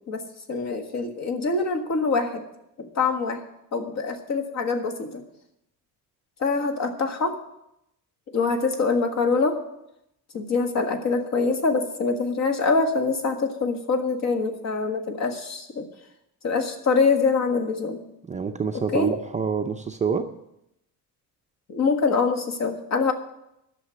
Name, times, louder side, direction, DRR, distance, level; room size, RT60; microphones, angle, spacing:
voice 1, 0.5-2.4 2.8-3.4 3.7-5.2 6.4-7.4 8.3-9.6 10.3-15.9 16.4-18.0 18.7-19.1 21.7-23.1, left 4 dB, 45° left, 6 dB, 1.6 m, -24 dB
voice 2, 18.3-20.3, right 5 dB, 20° right, 5 dB, 0.5 m, -26 dB
11.5 x 6.6 x 8.6 m, 0.82 s
cardioid pair, 160°, 36 cm